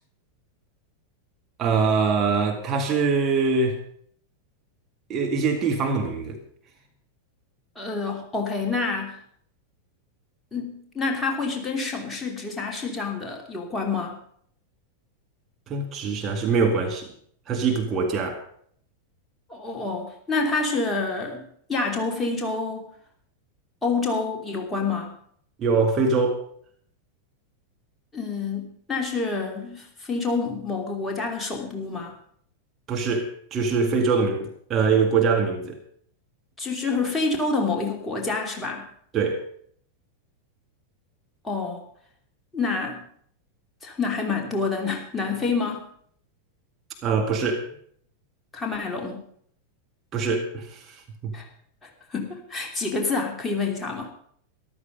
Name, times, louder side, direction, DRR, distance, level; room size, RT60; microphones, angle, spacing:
voice 1, 1.6-3.8 5.1-6.4 15.7-17.1 17.5-18.4 25.6-26.4 32.9-35.8 39.1-39.4 47.0-47.6 50.1-50.9 51.2-51.4, right 4 dB, 30° right, 2 dB, 2.0 m, -23 dB
voice 2, 7.7-9.2 10.5-14.2 19.5-21.4 21.7-22.9 23.8-25.1 28.1-32.2 36.6-38.9 41.4-41.8 42.5-43.0 43.8-45.9 48.5-49.2 51.3-51.5 51.8-54.1, left 4 dB, 10° left, 1 dB, 3.0 m, -28 dB
14.0 x 12.5 x 5.3 m, 0.62 s
figure-of-eight pair, 90°, 0 cm